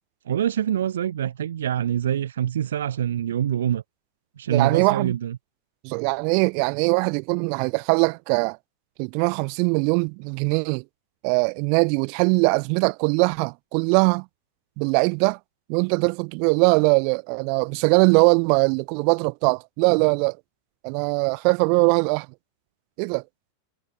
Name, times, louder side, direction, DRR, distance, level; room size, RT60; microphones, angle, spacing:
voice 1, 0.2-3.8 4.4-5.4, right 10 dB, 65° right, 1.9 m, -25 dB
voice 2, 4.5-5.2 5.8-8.6 9.0-10.8 11.2-14.2 14.8-15.4 15.7-20.4 20.8-22.3 23.0-23.2, right 40 dB or more, 45° right, 1.2 m, -21 dB
figure-of-eight pair, 90°, 0 cm